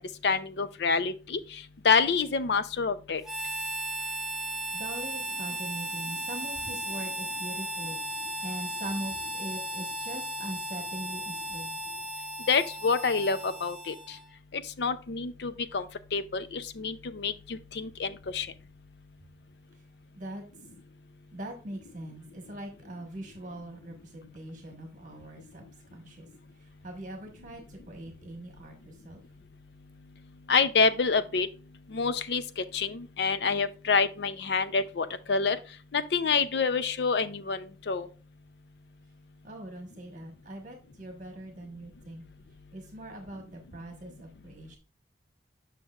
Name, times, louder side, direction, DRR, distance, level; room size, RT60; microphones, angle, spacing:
voice 1, 0.0-1.4 1.8-3.2 12.5-13.9 14.5-15.9 16.1-18.5 30.5-31.5 31.9-32.4 32.7-35.6 35.9-38.1, left 5 dB, 70° left, 0.5 m, -27 dB
Harmonica, 3.2-14.3, right 1 dB, 5° right, 0.7 m, -36 dB
voice 2, 4.7-11.8 20.1-20.4 21.3-26.3 26.6-29.2 39.4-42.2 42.7-44.8, right 1 dB, 45° right, 1.3 m, -42 dB
8.1 x 5.8 x 2.4 m
head